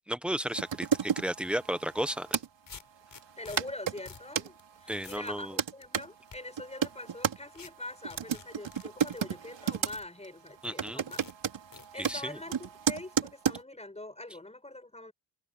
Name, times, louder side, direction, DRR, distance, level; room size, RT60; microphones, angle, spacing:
voice 1, 0.1-2.3 4.9-5.5 10.6-11.0 12.0-12.4, equal, ahead, 0.8 m, -33 dB
sound 1, 0.5-2.5 3.2-3.3 3.6-4.5 5.2-6.1 6.6-7.4 8.0-10.0 10.2-10.5 10.8-13.6, right 7 dB, 70° right, 3.5 m, -32 dB
sound 2, 1.9-2.0 2.7-3.6 4.1-4.3 4.6-4.7 5.0-5.3 5.8-6.4 7.6-7.7 8.1-9.2 9.9-10.1 10.6-10.7 11.1-11.3 11.7-12.2, left 6 dB, 45° left, 4.5 m, -49 dB
voice 2, 3.4-11.2 11.9-15.1, left 2 dB, 15° left, 5.6 m, -44 dB
wide cardioid pair, 165°, 46 cm